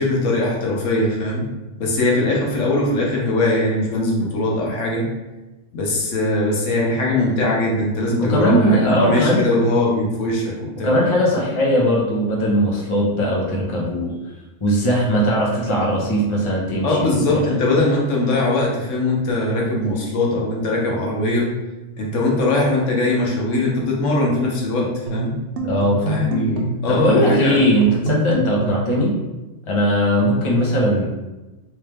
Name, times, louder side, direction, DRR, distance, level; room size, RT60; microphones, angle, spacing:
voice 1, 0.0-1.5 1.8-5.1 5.7-10.9 16.8-21.5 22.0-25.4 26.1-27.6, left 2 dB, 85° left, -2 dB, 1.2 m, -21 dB
voice 2, 8.2-9.4 10.8-14.1 14.6-17.5 25.6-26.0 26.9-29.1 29.7-31.1, equal, 30° left, -3 dB, 0.7 m, -19 dB
sound 1, 25.1-28.9, right 1 dB, 75° right, 0.9 m, -25 dB
3.1 x 3.1 x 3.4 m, 1.1 s
omnidirectional pair, 1.3 m